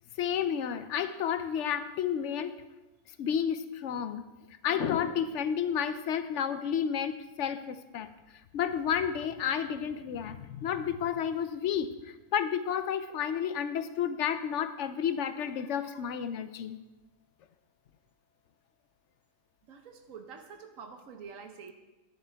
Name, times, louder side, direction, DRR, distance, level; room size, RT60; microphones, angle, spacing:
voice 1, 0.2-2.6 3.2-4.2 4.6-8.1 8.5-16.8, left 8 dB, 70° left, 12 dB, 0.9 m, -31 dB
voice 2, 19.7-21.7, right 6 dB, 85° right, 6 dB, 1.3 m, -47 dB
11.5 x 10.5 x 3.4 m, 1.1 s
omnidirectional pair, 1.4 m